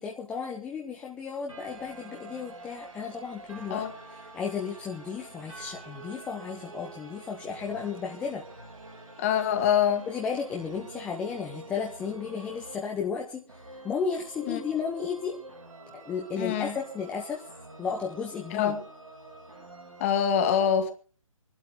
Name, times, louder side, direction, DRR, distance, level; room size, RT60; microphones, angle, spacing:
voice 1, 0.0-3.8 4.3-8.4 10.1-15.4 15.9-17.5 17.8-18.7, left 6 dB, 5° left, 0.8 m, -34 dB
sound 1, 1.5-20.1, right 2 dB, 75° right, 5.3 m, -47 dB
voice 2, 9.2-10.0 14.5-14.6 16.4-16.8 18.5-18.8 20.0-20.9, left 8 dB, 25° left, 1.9 m, -25 dB
25.5 x 12.0 x 3.4 m
figure-of-eight pair, 145°, 17 cm